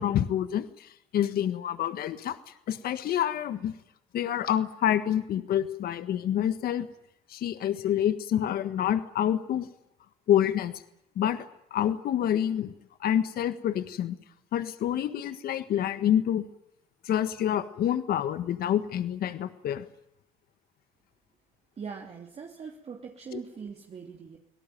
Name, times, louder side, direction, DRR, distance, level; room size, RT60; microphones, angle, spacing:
voice 1, 0.0-2.4 2.7-3.7 4.1-6.9 7.3-9.7 10.3-10.7 11.1-11.4 11.7-12.7 13.0-14.1 14.5-16.5 17.0-19.8, left 10 dB, 65° left, 11 dB, 1.6 m, -27 dB
voice 2, 21.8-24.4, right 6 dB, 40° right, 1 dB, 3.0 m, -41 dB
24.0 x 18.0 x 9.3 m, 0.82 s
cardioid pair, 110°, 17 cm